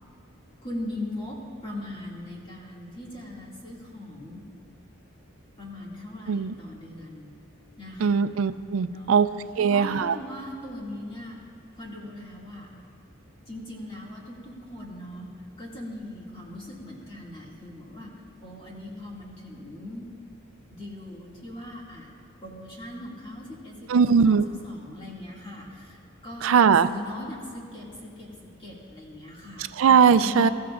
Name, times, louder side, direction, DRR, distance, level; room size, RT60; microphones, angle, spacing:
voice 1, 0.6-1.4 1.6-4.4 5.6-7.3 7.8-8.2 8.9-9.2 9.6-11.4 11.8-12.7 13.5-15.3 15.6-18.1 18.4-20.1 20.7-22.1 22.4-26.0 26.2-29.7 30.2-30.5, left 1 dB, 25° left, -4 dB, 2.2 m, -39 dB
voice 2, 8.0-9.3 9.6-10.2 23.9-24.4 26.4-26.9 29.8-30.5, right 6 dB, 80° right, 13 dB, 0.4 m, -19 dB
22.0 x 13.5 x 2.5 m, 2.3 s
head